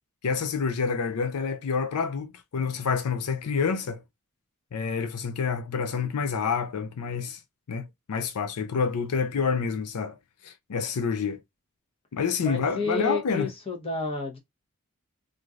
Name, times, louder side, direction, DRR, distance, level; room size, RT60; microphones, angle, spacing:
voice 1, 0.2-4.0 4.7-7.4 7.7-10.2 10.4-11.4 12.1-13.5, left 5 dB, 80° left, 0.4 m, -28 dB
voice 2, 12.4-14.4, left 3 dB, 25° left, 1.0 m, -30 dB
3.1 x 2.6 x 2.4 m
head